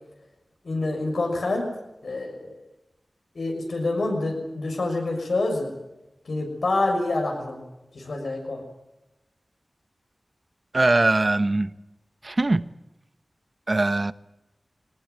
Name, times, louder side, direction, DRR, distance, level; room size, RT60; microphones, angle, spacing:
voice 1, 0.6-1.7 2.0-2.5 3.3-5.7 6.2-7.6 7.9-8.6, left 2 dB, 85° left, 3 dB, 6.3 m, -27 dB
voice 2, 10.7-11.7 12.2-12.7 13.7-14.1, right 2 dB, 45° right, 13 dB, 0.9 m, -21 dB
22.0 x 19.0 x 9.4 m, 0.96 s
wide cardioid pair, 65°, 0 cm